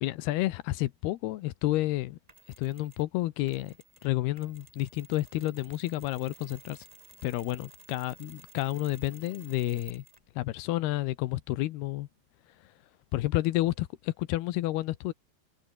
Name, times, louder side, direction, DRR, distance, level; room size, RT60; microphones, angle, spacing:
voice 1, 0.0-2.2 2.6-3.7 4.0-6.9 7.2-10.0 10.4-12.1 13.1-15.1, left 16 dB, 75° left, 2.8 m, -30 dB
Mechanisms, 2.3-3.1 3.5-10.3, right 2 dB, 15° right, 1.6 m, -55 dB
omnidirectional pair, 4.9 m